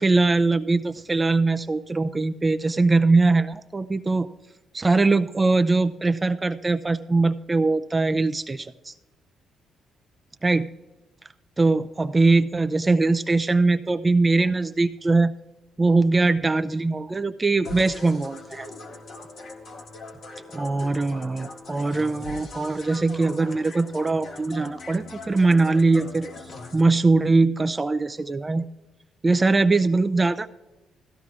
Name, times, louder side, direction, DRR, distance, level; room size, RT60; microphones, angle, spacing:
voice 1, 0.0-4.3 4.7-8.9 10.4-10.7 11.6-15.3 15.8-18.7 20.5-26.3 26.7-28.6 29.2-30.5, right 3 dB, 20° right, 9 dB, 0.4 m, -21 dB
sound 1, 17.6-26.8, left 3 dB, 60° left, 1.8 m, -41 dB
16.0 x 14.0 x 2.4 m, 1.1 s
cardioid pair, 90°, 0 cm